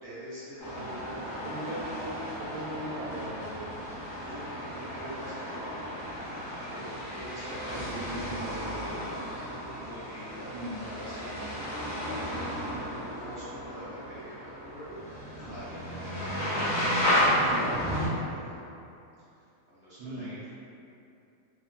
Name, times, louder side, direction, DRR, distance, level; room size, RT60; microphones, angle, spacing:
voice 1, 0.0-1.4 4.1-9.0 9.8-12.4 12.9-15.0 15.4-16.0 16.7-18.6 19.2-20.5, equal, 45° right, -12 dB, 1.1 m, -45 dB
sound 1, 0.6-18.1, equal, 15° right, 0.8 m, -33 dB
voice 2, 1.4-3.7 7.5-8.8 10.5-10.8 17.3-17.6 20.0-20.3, right 1 dB, 80° right, -6 dB, 1.1 m, -39 dB
2.7 x 2.6 x 2.3 m, 2.7 s
omnidirectional pair, 1.5 m